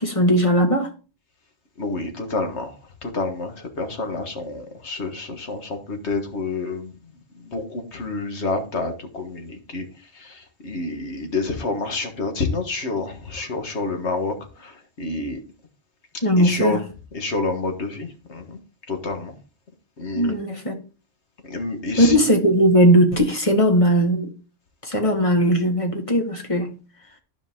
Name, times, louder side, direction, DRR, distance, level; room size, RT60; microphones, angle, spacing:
voice 1, 0.0-0.9 16.2-16.8 20.1-20.7 22.0-24.3 24.8-26.8, equal, 25° left, 1.6 m, -18 dB
voice 2, 1.8-6.9 7.3-15.4 16.4-16.8 17.1-18.6 18.9-19.4 20.0-20.4 21.4-22.2, left 3 dB, 60° left, 1.8 m, -28 dB
12.5 x 5.1 x 3.7 m
omnidirectional pair, 1.3 m